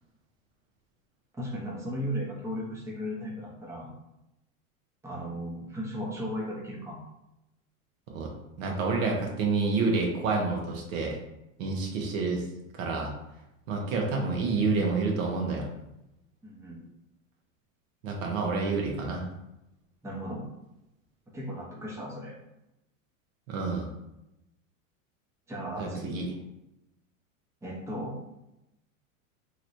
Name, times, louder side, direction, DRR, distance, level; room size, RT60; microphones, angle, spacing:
voice 1, 1.4-3.9 5.0-7.0 16.4-16.8 20.0-20.4 21.3-22.3 25.5-26.2 27.6-28.2, equal, 5° right, -4 dB, 0.7 m, -36 dB
voice 2, 8.6-11.2 11.6-12.4 12.7-13.1 13.7-15.7 18.0-19.2 23.5-23.9 25.8-26.3, right 4 dB, 70° right, 0 dB, 1.0 m, -28 dB
3.1 x 3.0 x 2.6 m, 0.89 s
hypercardioid pair, 115°, 41 cm